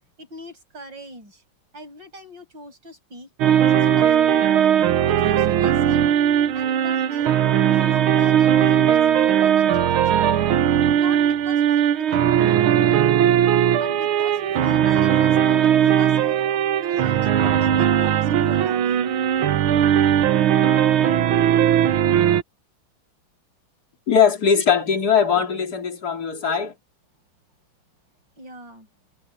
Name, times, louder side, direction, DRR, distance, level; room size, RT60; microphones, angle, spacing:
voice 1, 0.2-1.4 1.7-3.3 3.7-4.7 5.1-6.1 6.5-7.3 7.7-10.6 11.0-13.1 13.8-16.4 16.8-19.0 19.3-19.4 28.4-28.9, equal, 55° right, 7.9 m, -41 dB
sound 1, 3.4-22.4, right 10 dB, 75° right, 1.8 m, -18 dB
voice 2, 24.1-26.7, left 7 dB, 45° left, 3.7 m, -20 dB
omnidirectional pair, 2.3 m